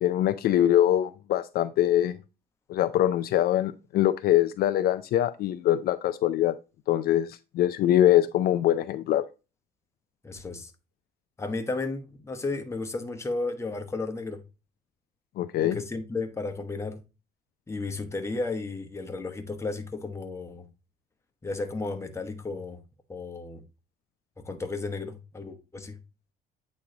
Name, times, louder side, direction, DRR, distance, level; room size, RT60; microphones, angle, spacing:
voice 1, 0.0-2.2 2.7-6.5 6.9-9.2 15.4-15.8, left 12 dB, 65° left, 0.4 m, -23 dB
voice 2, 10.2-10.7 11.4-14.4 15.6-17.0 17.7-20.7 21.4-22.8 23.1-23.6 24.4-26.0, left 3 dB, 15° left, 1.1 m, -33 dB
8.5 x 3.1 x 3.8 m
cardioid pair, 110°, 17 cm